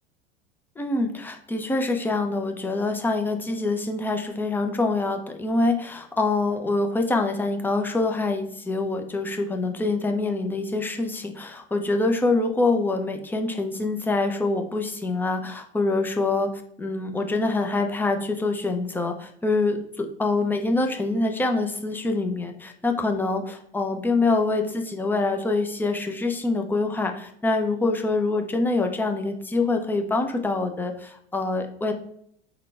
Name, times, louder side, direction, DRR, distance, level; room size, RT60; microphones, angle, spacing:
voice 1, 0.8-16.5 16.8-31.9, left 3 dB, 5° left, 5 dB, 0.4 m, -25 dB
3.8 x 2.2 x 3.2 m, 0.68 s
hypercardioid pair, 80°, 35 cm